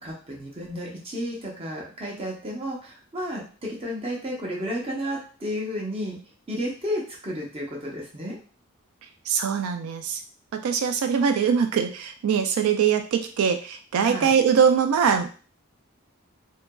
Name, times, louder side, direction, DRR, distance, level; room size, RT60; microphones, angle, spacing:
voice 1, 0.0-6.2 6.5-8.4 14.0-14.3, equal, 25° right, -2 dB, 0.7 m, -32 dB
voice 2, 9.3-10.2 10.6-15.3, right 7 dB, 90° right, 6 dB, 0.3 m, -22 dB
2.7 x 2.4 x 2.2 m, 0.38 s
head